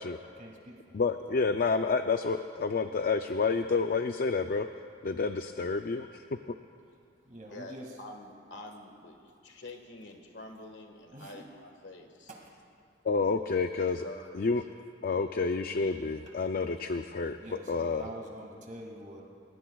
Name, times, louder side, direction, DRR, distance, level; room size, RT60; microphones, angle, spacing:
voice 1, 0.4-1.0 1.3-1.5 7.3-7.9 11.1-11.4 12.3-12.5 17.4-19.2, right 1 dB, 45° right, -1 dB, 2.1 m, -45 dB
voice 2, 0.9-4.7 5.0-6.2 13.0-14.1 14.3-14.6 15.0-17.4 17.7-18.0, left 4 dB, 50° left, 7 dB, 0.4 m, -29 dB
voice 3, 7.5-12.3 13.8-14.4, left 2 dB, 75° left, 4 dB, 1.6 m, -47 dB
30.0 x 16.0 x 2.3 m, 2.4 s
head